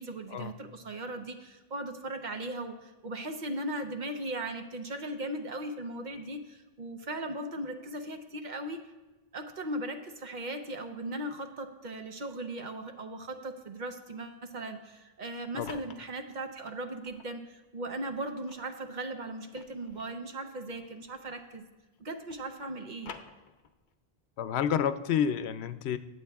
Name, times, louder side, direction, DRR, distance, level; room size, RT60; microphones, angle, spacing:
voice 1, 0.0-8.8 9.3-21.6 22.0-23.1, right 1 dB, 50° right, 6 dB, 0.9 m, -38 dB
sound 1, 15.2-17.3 17.9-21.7 21.9-23.9, left 6 dB, 55° left, 0.8 m, -51 dB
voice 2, 24.4-26.0, left 8 dB, 85° left, 12 dB, 0.8 m, -29 dB
22.5 x 7.7 x 2.3 m, 1.2 s
omnidirectional pair, 1.1 m